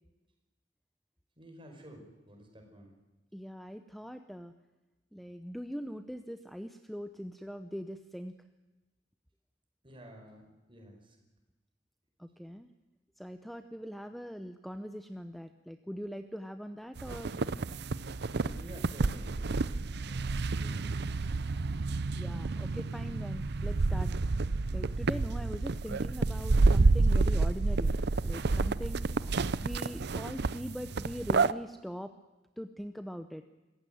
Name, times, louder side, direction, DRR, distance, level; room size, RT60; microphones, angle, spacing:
voice 1, 1.4-2.9 9.8-11.2 18.4-20.3 20.5-21.1, equal, 30° right, 3 dB, 5.5 m, -51 dB
voice 2, 3.3-4.5 5.1-8.3 12.2-12.7 13.2-17.4 22.1-24.1 24.7-27.9 28.2-29.1 29.6-32.1 32.6-33.4, equal, ahead, 8 dB, 0.8 m, -41 dB
sound 1, 17.0-31.5, right 3 dB, 60° right, 0.7 m, -29 dB
25.5 x 15.0 x 9.3 m, 1.1 s
head